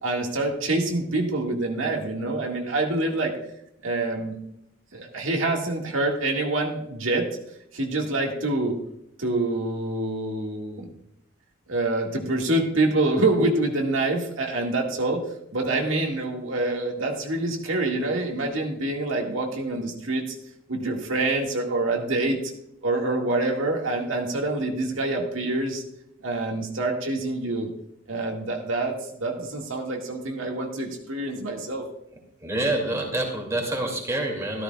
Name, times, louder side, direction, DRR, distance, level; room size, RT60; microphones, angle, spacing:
voice 1, 0.0-3.3 3.8-4.4 4.9-7.3 7.7-8.8 9.2-10.9 11.7-15.2 15.5-20.3 20.7-22.4 22.8-25.8 26.2-27.7 28.1-31.8, right 2 dB, 80° right, 0 dB, 2.0 m, -26 dB
voice 2, 32.4-34.6, right 1 dB, 15° right, 0 dB, 2.6 m, -27 dB
14.0 x 13.0 x 2.4 m, 0.76 s
head